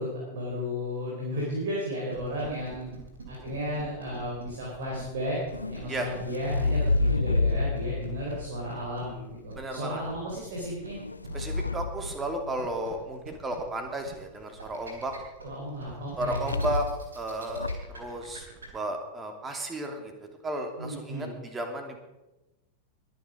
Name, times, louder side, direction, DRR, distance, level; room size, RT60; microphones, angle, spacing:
voice 1, 0.0-2.8 3.3-11.0 15.4-16.5 20.8-21.3, equal, 60° right, -3 dB, 4.3 m, -34 dB
sound 1, 2.1-18.7, right 3 dB, 75° right, 4.1 m, -46 dB
sound 2, 5.5-9.6 10.6-12.9 16.2-17.1 17.5-18.0, left 3 dB, 80° left, 0.6 m, -30 dB
voice 2, 9.6-10.0 11.3-15.1 16.2-16.9 17.1-18.5 18.7-22.0, right 1 dB, 20° right, 5 dB, 2.7 m, -34 dB
22.0 x 9.6 x 5.1 m, 1.0 s
figure-of-eight pair, 90°, 0 cm